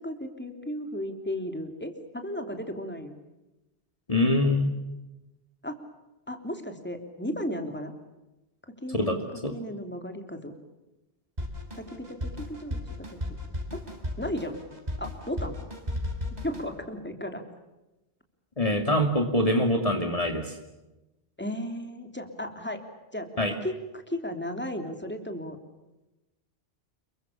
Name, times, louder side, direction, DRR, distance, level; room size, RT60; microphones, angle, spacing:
voice 1, 0.0-3.2 5.6-5.8 6.3-7.9 8.7-10.5 11.7-12.8 13.1-13.4 13.7-13.8 14.2-14.6 15.0-15.6 16.4-17.4 21.4-22.8 23.1-25.6, equal, 10° left, 5 dB, 3.1 m, -35 dB
voice 2, 4.1-4.7 8.9-9.2 9.4-9.5 18.6-20.5 23.4-23.5, left 1 dB, 35° left, 4 dB, 2.5 m, -24 dB
Drum kit, 11.4-16.7, left 1 dB, 40° right, 4.9 m, -35 dB
29.5 x 22.5 x 7.1 m, 1.0 s
omnidirectional pair, 1.1 m